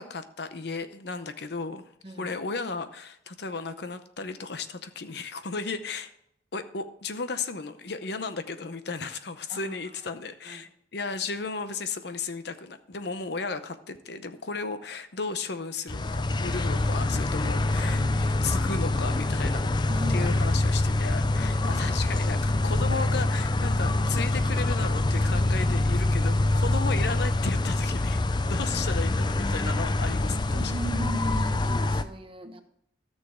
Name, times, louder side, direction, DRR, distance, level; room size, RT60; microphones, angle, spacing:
voice 1, 0.0-1.9 2.2-6.1 6.5-19.7 20.1-30.7, left 4 dB, 60° left, 11 dB, 0.7 m, -34 dB
voice 2, 2.0-2.3 9.5-10.0 10.5-10.7 17.0-18.2 19.9-20.4 21.6-22.0 28.4-28.6 30.5-32.6, equal, 30° right, 6 dB, 1.0 m, -38 dB
sound 1, 15.9-32.0, left 2 dB, 25° left, 0.4 m, -25 dB
14.0 x 6.5 x 3.7 m, 0.73 s
head